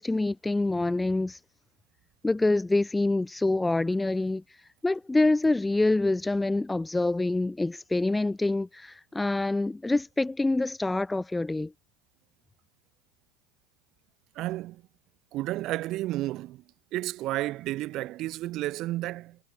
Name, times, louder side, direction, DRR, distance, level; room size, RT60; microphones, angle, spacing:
voice 1, 0.0-1.4 2.2-4.4 4.8-11.7, left 2 dB, 10° left, 0.4 m, -26 dB
voice 2, 14.4-14.8 15.3-16.6 16.9-19.4, right 16 dB, 50° right, 2.0 m, -32 dB
hypercardioid pair, 95°, 0 cm